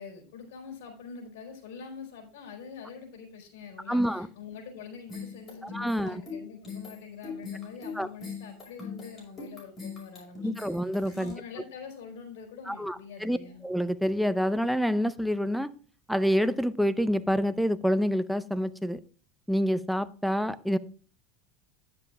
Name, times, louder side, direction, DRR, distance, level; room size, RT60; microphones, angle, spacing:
voice 1, 0.0-10.7 11.1-13.7, left 6 dB, 75° left, 3 dB, 4.1 m, -45 dB
voice 2, 3.9-4.3 5.6-6.2 8.0-8.1 10.4-11.3 12.7-13.4 13.6-15.7 16.1-19.0 19.5-20.8, equal, ahead, 13 dB, 0.5 m, -27 dB
sound 1, 5.1-11.3, left 5 dB, 25° left, 5.6 m, -41 dB
10.5 x 7.0 x 3.5 m, 0.41 s
supercardioid pair, 120°, 0 cm